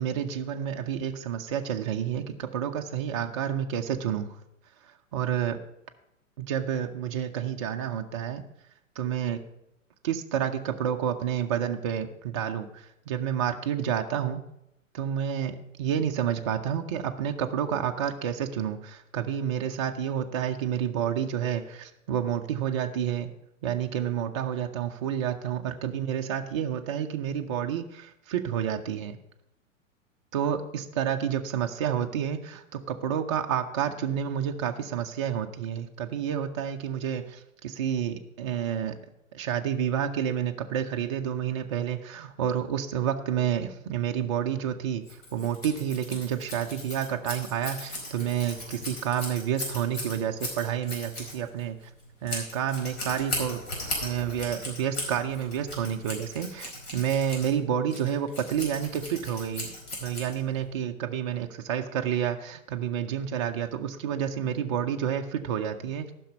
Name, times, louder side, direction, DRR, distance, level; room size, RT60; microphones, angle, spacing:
voice 1, 0.0-4.4 4.8-5.6 6.4-8.4 9.0-9.4 10.0-14.4 14.9-23.3 23.6-29.2 30.3-39.0 39.3-51.8 52.2-53.6 54.0-59.7 60.0-66.1, right 9 dB, 25° right, 4 dB, 0.4 m, -29 dB
Scissors, 45.0-60.7, left 1 dB, 50° left, 4.7 m, -38 dB
14.0 x 6.0 x 5.3 m, 0.83 s
figure-of-eight pair, 105°, 40 cm